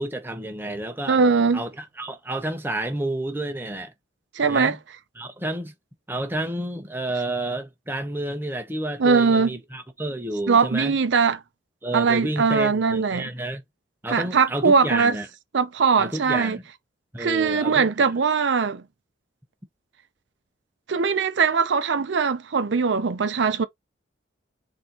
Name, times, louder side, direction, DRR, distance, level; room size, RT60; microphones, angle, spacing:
voice 1, 0.0-1.2 1.5-3.9 4.5-4.8 5.2-5.7 6.1-11.0 11.8-13.6 14.0-15.3 16.0-16.6 17.1-18.1, right 1 dB, 10° right, 0.7 m, -30 dB
voice 2, 1.1-1.6 4.3-4.8 9.0-9.5 10.5-11.4 11.9-13.3 14.1-15.1 15.5-16.6 17.2-18.8 20.9-23.6, right 5 dB, 70° right, 0.5 m, -21 dB
4.3 x 2.7 x 3.8 m
head